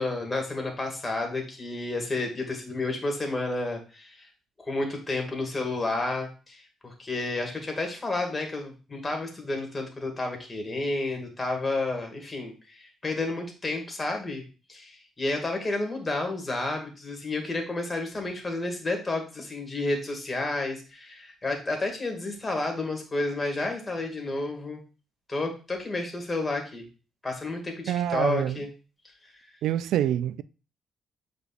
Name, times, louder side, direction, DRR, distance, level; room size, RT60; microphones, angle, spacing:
voice 1, 0.0-4.3 4.6-14.4 14.7-24.8 25.3-26.9 27.2-28.7 29.2-29.3, left 2 dB, 25° left, 2.2 m, -31 dB
voice 2, 27.9-28.6 29.6-30.4, right 11 dB, 80° right, 0.3 m, -26 dB
7.9 x 5.0 x 2.5 m
cardioid pair, 90°, 0 cm